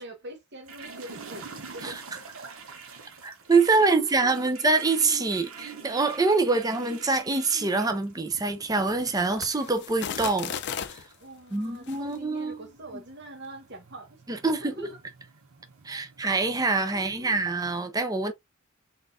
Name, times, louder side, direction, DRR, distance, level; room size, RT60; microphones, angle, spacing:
voice 1, 0.0-2.6 3.7-4.5 11.2-14.2 14.4-15.0 15.9-16.0 16.9-17.4, equal, 55° right, 1.2 m, -44 dB
sound 1, 0.7-17.7, right 5 dB, 75° right, 0.9 m, -47 dB
voice 2, 3.2-10.5 10.9-11.0 11.5-12.6 14.3-14.9 15.8-18.3, right 3 dB, 15° right, 0.6 m, -25 dB
sound 2, 8.7-11.1 11.8-12.0, left 8 dB, 55° left, 0.5 m, -36 dB
3.8 x 3.5 x 2.5 m
head